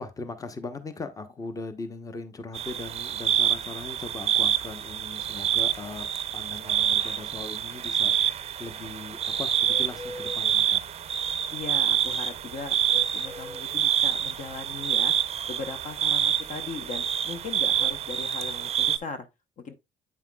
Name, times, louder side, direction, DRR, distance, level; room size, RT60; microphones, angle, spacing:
voice 1, 0.0-6.1 6.3-10.9, left 3 dB, 20° left, 0.9 m, -39 dB
sound 1, 2.5-19.0, right 10 dB, 40° right, 0.5 m, -27 dB
Bird, 8.0-17.9, left 2 dB, 85° left, 3.7 m, -44 dB
voice 2, 11.5-15.1 15.5-19.3 19.6-19.7, left 4 dB, 50° left, 0.8 m, -38 dB
8.5 x 5.6 x 2.2 m
cardioid pair, 110°, 17 cm